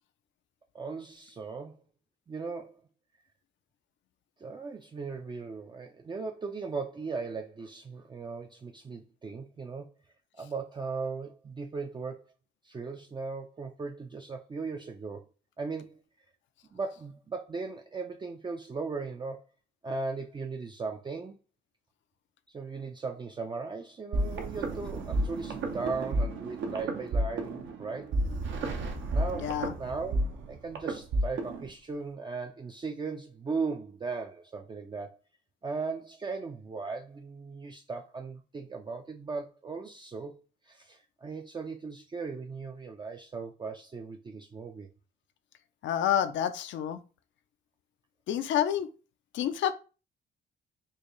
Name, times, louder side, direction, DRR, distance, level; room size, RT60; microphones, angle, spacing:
voice 1, 0.7-1.8 2.3-2.8 4.4-9.9 10.4-12.3 12.6-15.2 15.6-16.0 16.7-19.4 19.8-21.4 22.5-28.2 29.1-35.2 35.6-40.3 40.6-44.9, right 4 dB, 25° right, 0.4 m, -37 dB
sound 1, 24.1-31.7, right 2 dB, 75° right, 0.8 m, -31 dB
voice 2, 29.4-29.7 45.8-47.0 48.3-48.9 49.3-49.7, left 10 dB, 70° left, 0.5 m, -28 dB
4.5 x 2.4 x 3.1 m
cardioid pair, 90°, 20 cm